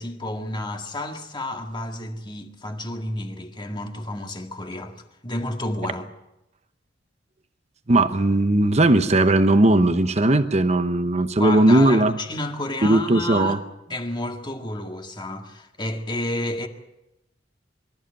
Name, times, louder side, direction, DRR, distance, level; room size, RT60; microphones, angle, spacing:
voice 1, 0.0-5.0 5.2-6.1 11.4-13.6 13.9-16.7, left 1 dB, 25° left, 1.9 m, -30 dB
voice 2, 7.9-12.1 12.8-13.6, right 2 dB, 35° right, 0.9 m, -18 dB
24.5 x 14.0 x 9.0 m
head